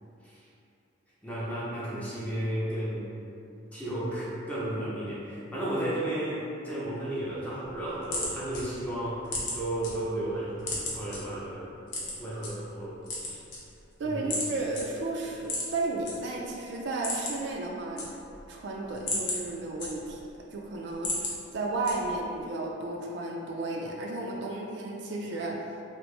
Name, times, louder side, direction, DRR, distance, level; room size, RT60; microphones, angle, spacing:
voice 1, 1.2-3.1 3.7-11.7 12.2-13.4 14.0-14.3, right 1 dB, 5° left, -9 dB, 0.6 m, -33 dB
sound 1, 7.7-9.9 10.3-11.2 11.9-12.5 13.0-13.9 14.3-14.5 14.7-14.8 15.4-16.1 16.5-16.6 16.9-17.5 17.8-18.5 18.8-20.3 20.7-21.3 21.8-22.3, left 2 dB, 60° left, 0.7 m, -33 dB
voice 2, 14.0-18.1 18.5-25.8, right 2 dB, 60° right, -1 dB, 0.3 m, -33 dB
2.9 x 2.5 x 3.2 m, 2.6 s
head